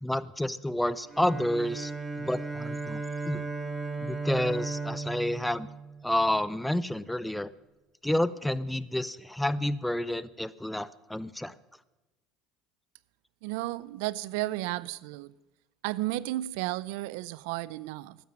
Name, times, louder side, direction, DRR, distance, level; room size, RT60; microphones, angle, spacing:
voice 1, 0.0-1.9 2.2-3.5 4.0-5.7 6.0-7.5 8.0-11.5, left 1 dB, 5° left, 0.7 m, -29 dB
Bowed string instrument, 1.1-6.5, right 4 dB, 15° right, 1.8 m, -36 dB
voice 2, 13.4-15.3 15.8-18.2, right 17 dB, 75° right, 0.5 m, -33 dB
12.5 x 9.4 x 7.5 m
hypercardioid pair, 80°, 0 cm